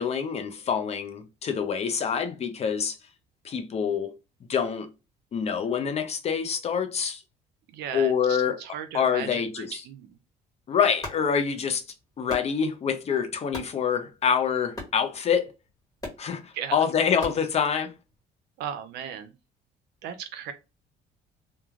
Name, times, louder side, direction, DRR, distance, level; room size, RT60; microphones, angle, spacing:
voice 1, 0.0-3.0 3.4-4.1 4.5-4.9 5.3-7.2 7.9-8.6 8.9-9.8 10.7-11.8 12.2-15.5 16.2-17.9, left 7 dB, 40° left, 0.5 m, -26 dB
voice 2, 7.7-10.2 16.5-16.8 18.6-19.3 20.0-20.5, right 9 dB, 80° right, 0.5 m, -36 dB
sound 1, 10.9-18.2, left 1 dB, 20° left, 1.2 m, -44 dB
3.1 x 2.2 x 2.4 m
cardioid pair, 110°, 17 cm